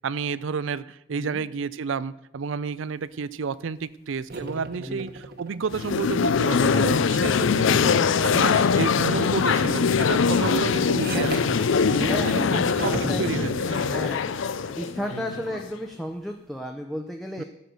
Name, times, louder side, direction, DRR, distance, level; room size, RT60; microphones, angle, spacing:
voice 1, 0.0-7.9 8.2-11.4 11.9-14.0 15.1-15.2 17.4-17.5, right 5 dB, 75° right, 18 dB, 0.4 m, -31 dB
voice 2, 1.1-1.5 4.8-5.0 11.1-14.3 14.8-17.4, equal, ahead, 3 dB, 0.6 m, -34 dB
sound 1, 4.3-7.6 8.5-8.8 9.2-12.4 12.7-16.3, right 2 dB, 50° right, 1.1 m, -39 dB
sound 2, 5.7-15.7, left 5 dB, 70° left, 0.5 m, -22 dB
12.5 x 6.5 x 6.9 m, 0.88 s
head